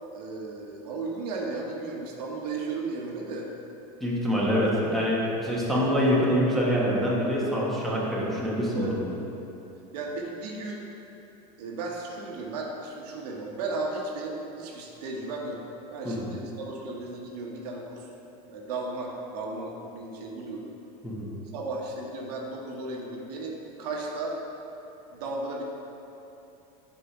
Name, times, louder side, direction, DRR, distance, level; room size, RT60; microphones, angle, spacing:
voice 1, 0.1-3.5 4.4-4.5 8.8-8.9 9.9-10.9 11.6-15.6 15.9-18.1 18.5-20.7 21.5-24.4 25.1-25.6, right 3 dB, 80° right, -1 dB, 1.1 m, -35 dB
voice 2, 4.0-9.0 16.0-16.2 21.0-21.3, equal, ahead, -7 dB, 1.3 m, -25 dB
5.2 x 4.9 x 5.9 m, 3.0 s
supercardioid pair, 130°, 20 cm